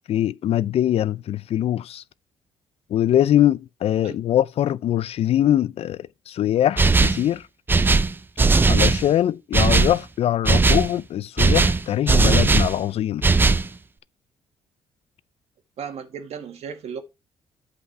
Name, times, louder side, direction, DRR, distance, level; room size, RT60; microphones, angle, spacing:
voice 1, 0.1-2.0 2.9-6.0 6.3-7.4 8.7-13.3, left 11 dB, 60° left, 0.4 m, -22 dB
sound 1, 6.8-7.3 7.7-9.1 9.5-10.0 10.4-10.9 11.4-12.7 13.2-13.7, right 3 dB, 20° right, 0.5 m, -18 dB
voice 2, 15.8-17.0, right 7 dB, 65° right, 1.7 m, -35 dB
8.1 x 5.5 x 4.2 m
cardioid pair, 105°, 12 cm